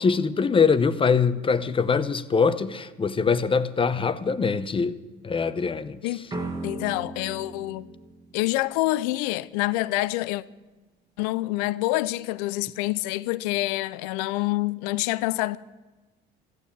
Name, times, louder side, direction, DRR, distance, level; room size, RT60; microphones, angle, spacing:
voice 1, 0.0-5.0 5.2-6.0, left 5 dB, 25° left, 0.9 m, -23 dB
sound 1, 6.3-9.2, right 2 dB, 20° right, 1.9 m, -37 dB
voice 2, 6.6-7.9 8.3-10.4 11.2-15.6, left 18 dB, 90° left, 0.5 m, -27 dB
15.0 x 9.3 x 8.6 m
supercardioid pair, 90°, 20 cm